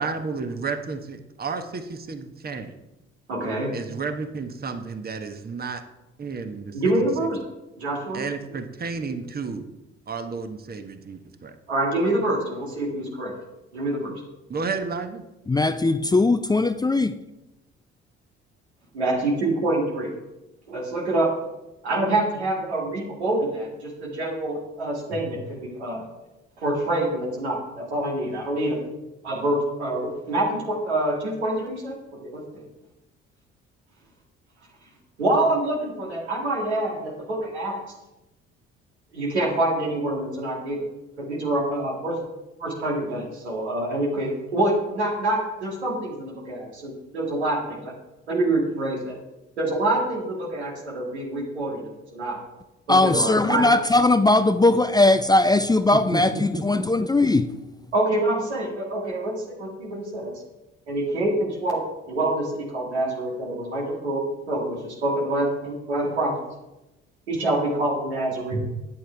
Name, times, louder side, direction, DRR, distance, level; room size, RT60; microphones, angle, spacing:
voice 1, 0.0-2.7 3.7-5.8 6.2-6.8 8.1-9.6 10.1-11.5 14.5-15.2 55.9-56.8, right 4 dB, 30° right, 8 dB, 1.2 m, -32 dB
voice 2, 3.3-3.7 6.7-7.4 7.8-8.2 11.7-13.4 13.7-14.1 18.9-20.1 20.7-21.4 21.8-26.0 26.6-28.8 29.2-31.9 32.2-32.6 35.2-37.8 39.1-40.8 41.2-42.2 42.6-47.9 48.3-49.1 49.6-52.4 53.0-53.7 57.9-60.3 60.9-61.8 62.1-66.4 67.3-68.6, right 1 dB, 80° right, -2 dB, 2.3 m, -26 dB
voice 3, 15.5-17.2 52.9-57.6, left 2 dB, 10° left, 11 dB, 0.5 m, -19 dB
13.5 x 9.1 x 3.4 m, 0.97 s
figure-of-eight pair, 50°, 32 cm